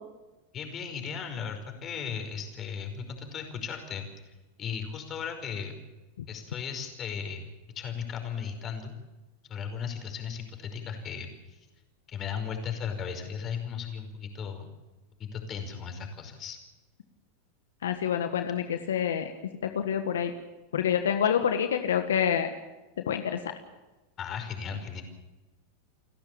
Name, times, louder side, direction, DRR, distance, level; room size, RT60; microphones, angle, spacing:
voice 1, 0.5-4.1 4.6-5.7 6.3-7.5 7.8-8.9 9.5-11.6 12.1-14.7 15.2-16.6 24.2-25.0, left 7 dB, 35° left, 5 dB, 5.3 m, -36 dB
voice 2, 17.8-19.3 19.6-20.3 20.7-22.5 23.1-23.4, left 8 dB, 85° left, 7 dB, 1.5 m, -27 dB
30.0 x 12.0 x 8.8 m, 1.1 s
hypercardioid pair, 110°, 0 cm